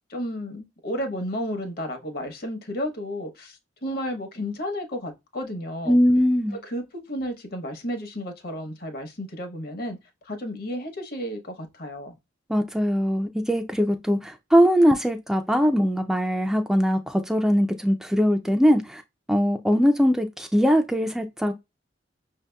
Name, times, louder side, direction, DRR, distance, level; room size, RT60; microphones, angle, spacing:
voice 1, 0.1-6.0 6.6-10.0 10.3-12.1, equal, 55° left, 0.9 m, -32 dB
voice 2, 5.9-6.6 12.5-19.0 19.3-21.5, equal, 5° right, 0.3 m, -21 dB
5.6 x 2.7 x 2.2 m
head